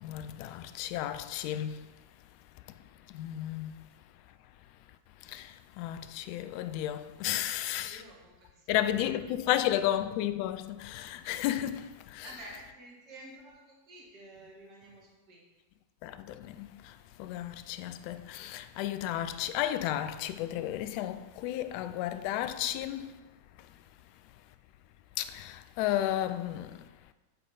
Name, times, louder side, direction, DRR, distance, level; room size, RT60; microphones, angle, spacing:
voice 1, 0.0-1.9 3.1-3.7 5.3-8.0 8.7-12.3 16.0-16.7 17.2-23.1 25.2-26.8, left 12 dB, 45° left, 0.3 m, -33 dB
voice 2, 7.3-8.8 9.1-9.2 9.5-9.9 12.2-15.4, right 1 dB, 40° right, 1.7 m, -51 dB
7.9 x 3.8 x 3.9 m
figure-of-eight pair, 90°, 0 cm